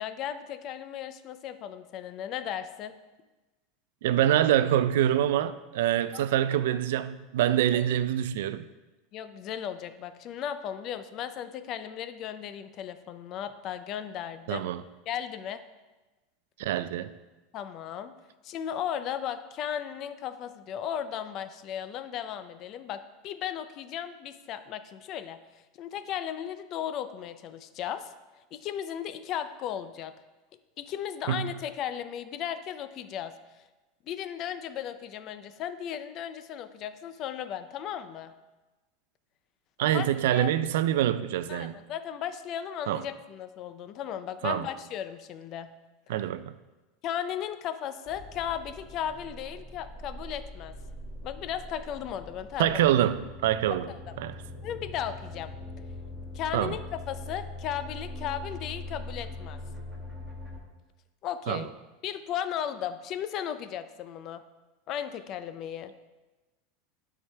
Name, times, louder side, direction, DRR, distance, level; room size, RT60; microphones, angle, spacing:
voice 1, 0.0-2.9 6.1-6.2 7.7-7.8 9.1-14.7 15.1-15.6 17.5-18.1 18.4-28.1 28.5-30.1 30.8-33.3 34.0-38.3 39.9-40.1 40.3-40.5 41.5-45.7 47.0-50.7 51.2-52.8 53.9-54.0 54.6-55.5 56.3-59.6 61.2-61.7 62.0-64.4 64.9-65.9, left 9 dB, 40° left, 11 dB, 0.4 m, -36 dB
voice 2, 4.0-8.6 14.5-14.8 16.6-17.1 31.3-31.5 39.8-41.7 42.9-43.0 44.4-44.7 46.1-46.5 52.6-53.9 54.2-54.3 56.5-56.8 61.5-61.6, right 11 dB, 80° right, 14 dB, 0.3 m, -25 dB
Noisy Nightmare Drone, 48.1-60.6, left 2 dB, 10° right, 1.1 m, -42 dB
11.5 x 4.6 x 3.3 m, 1.1 s
supercardioid pair, 155°, 0 cm